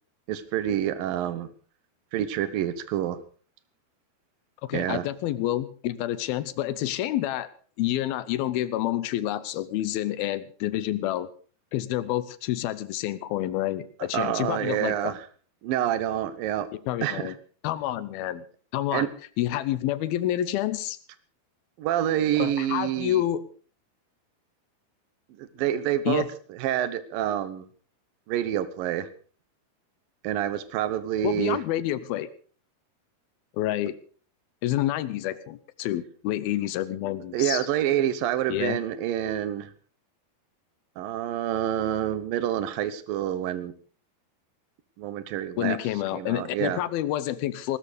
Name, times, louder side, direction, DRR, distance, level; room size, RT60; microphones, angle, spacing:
voice 1, 0.3-1.5 2.1-3.2 4.7-5.0 14.1-15.2 15.6-16.7 17.0-17.3 18.9-19.1 21.8-23.3 25.4-26.2 26.5-27.7 28.3-29.1 30.2-31.6 37.3-39.7 41.0-43.7 45.0-45.8 46.1-46.8, right 11 dB, 70° right, 14 dB, 2.8 m, -27 dB
voice 2, 4.6-7.5 7.8-11.3 11.7-15.1 16.9-17.3 17.6-18.5 18.7-19.1 19.4-21.0 22.4-23.4 26.1-26.3 31.2-32.3 33.5-34.0 34.6-37.7 38.5-38.8 45.6-47.8, left 13 dB, 75° left, 16 dB, 2.6 m, -28 dB
19.0 x 13.0 x 5.2 m, 0.42 s
omnidirectional pair, 4.5 m